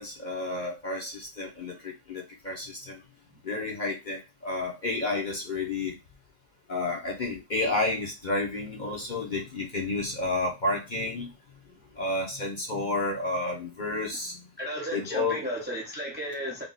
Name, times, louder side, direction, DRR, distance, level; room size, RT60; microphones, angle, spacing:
voice 1, 0.0-3.0 3.4-5.9 6.7-11.3 12.0-14.5 14.9-15.4, left 2 dB, 40° left, -2 dB, 0.7 m, -31 dB
voice 2, 14.6-16.6, equal, 15° right, -2 dB, 0.3 m, -34 dB
3.6 x 2.3 x 3.9 m, 0.26 s
omnidirectional pair, 1.6 m